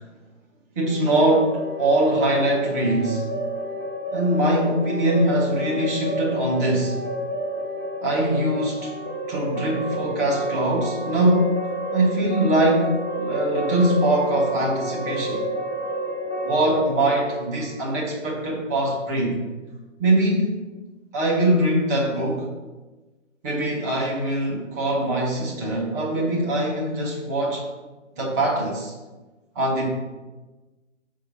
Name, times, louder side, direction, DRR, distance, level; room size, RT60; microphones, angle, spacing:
sound 1, 0.8-18.6, equal, 15° left, 0.4 m, -30 dB
voice 1, 0.8-3.3 4.1-7.0 8.0-9.0 9.3-15.4 16.4-19.4 20.0-20.6 21.1-22.5 23.4-27.7 28.2-28.9 29.5-29.9, right 1 dB, 15° right, -2 dB, 0.7 m, -22 dB
6.4 x 3.7 x 6.0 m, 1.2 s
figure-of-eight pair, 140°, 37 cm